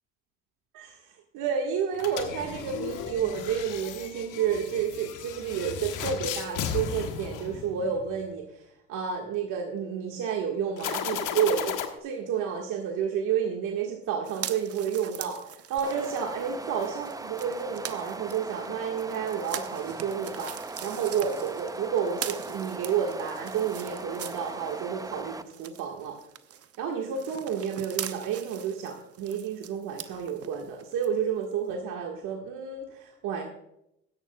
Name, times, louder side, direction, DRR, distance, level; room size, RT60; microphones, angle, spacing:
voice 1, 1.3-8.6 8.9-20.5 20.8-26.2 26.8-33.4, right 7 dB, 65° right, 1 dB, 1.7 m, -30 dB
sound 1, 1.9-8.1 10.8-11.9, left 8 dB, 65° left, 1.4 m, -35 dB
sound 2, 14.2-25.0 25.3-31.1 31.5-31.6, right 10 dB, 45° right, 0.9 m, -42 dB
sound 3, 15.8-25.4, right 3 dB, 10° right, 0.6 m, -39 dB
15.5 x 11.5 x 2.3 m, 0.79 s
hypercardioid pair, 65°, 33 cm